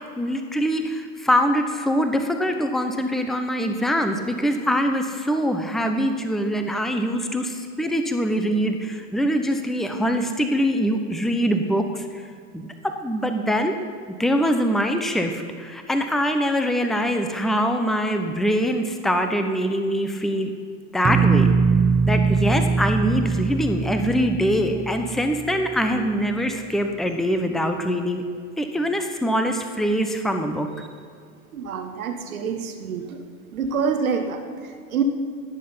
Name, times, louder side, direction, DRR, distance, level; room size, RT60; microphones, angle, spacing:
voice 1, 0.2-12.3 12.5-13.7 14.2-20.5 20.9-21.5 22.1-28.2 28.6-30.7, equal, ahead, 6 dB, 1.0 m, -23 dB
sound 1, 21.0-25.9, right 5 dB, 15° right, 0.6 m, -22 dB
voice 2, 31.5-33.2 33.5-35.0, right 6 dB, 90° right, 6 dB, 1.5 m, -27 dB
17.0 x 7.6 x 5.7 m, 2.2 s
hypercardioid pair, 95°, 41 cm